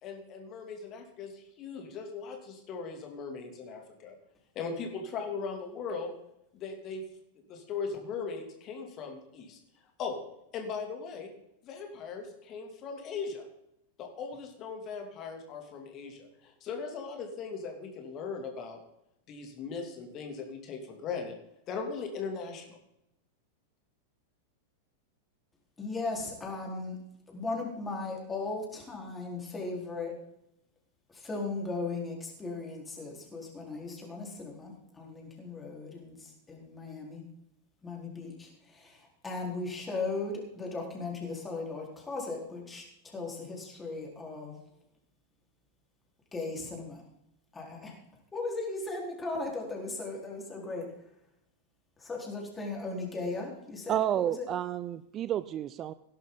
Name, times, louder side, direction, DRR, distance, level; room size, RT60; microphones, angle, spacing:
voice 1, 0.0-4.1 4.5-6.1 6.5-7.0 7.5-9.6 10.0-10.2 10.5-11.3 11.6-13.5 14.0-18.8 19.3-21.3 21.7-22.8, left 5 dB, 35° left, 3 dB, 2.8 m, -39 dB
voice 2, 25.8-27.0 27.3-30.2 31.1-37.2 37.8-44.6 46.3-47.0 47.5-48.0 48.3-50.9 52.0-54.5, left 3 dB, 15° left, -1 dB, 4.3 m, -37 dB
voice 3, 53.9-55.9, right 11 dB, 30° right, 15 dB, 0.4 m, -30 dB
17.5 x 11.0 x 4.0 m, 0.80 s
figure-of-eight pair, 90°, 0 cm